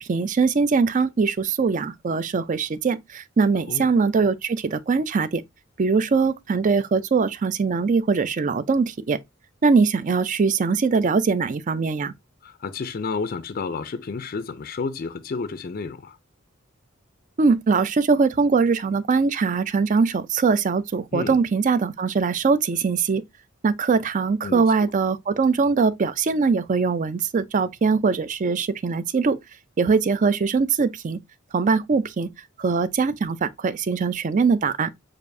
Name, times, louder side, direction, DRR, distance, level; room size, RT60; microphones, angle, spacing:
voice 1, 0.0-5.4 5.8-9.2 9.6-12.1 17.4-23.2 23.6-29.4 29.8-31.2 31.5-32.3 32.6-34.9, right 4 dB, 40° right, 0.4 m, -22 dB
voice 2, 12.4-16.2 21.1-21.4 24.4-24.9, left 4 dB, 45° left, 0.4 m, -31 dB
6.6 x 2.5 x 2.6 m
head